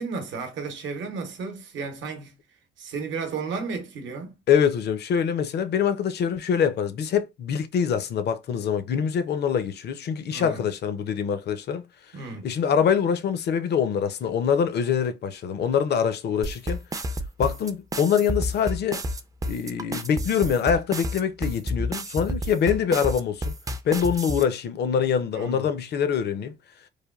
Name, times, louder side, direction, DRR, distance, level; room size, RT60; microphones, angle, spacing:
voice 1, 0.0-2.3 2.8-4.4 10.3-10.6 12.1-12.5 25.3-25.7, right 4 dB, 70° right, 0.8 m, -33 dB
voice 2, 4.5-11.8 12.4-16.8 17.4-19.0 19.5-23.5 23.8-26.5, left 7 dB, 55° left, 0.5 m, -24 dB
sound 1, 16.4-24.4, equal, 15° right, 0.3 m, -30 dB
3.2 x 2.2 x 2.3 m
cardioid pair, 90°, 20 cm